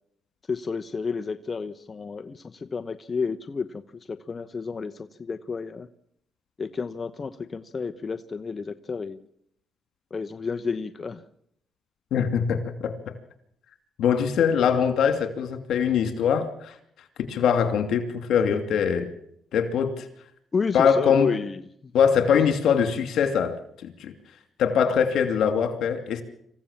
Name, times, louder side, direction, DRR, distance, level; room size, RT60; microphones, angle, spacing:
voice 1, 0.5-5.9 6.6-9.3 10.1-11.2 20.5-21.9 22.4-22.5, left 5 dB, 35° left, 8 dB, 1.0 m, -31 dB
voice 2, 12.1-12.9 14.0-16.7 17.3-19.1 19.5-20.1 20.7-21.3 21.9-24.1 24.6-26.2, left 7 dB, 75° left, 9 dB, 2.6 m, -22 dB
26.5 x 15.5 x 7.3 m, 0.71 s
cardioid pair, 90°, 0 cm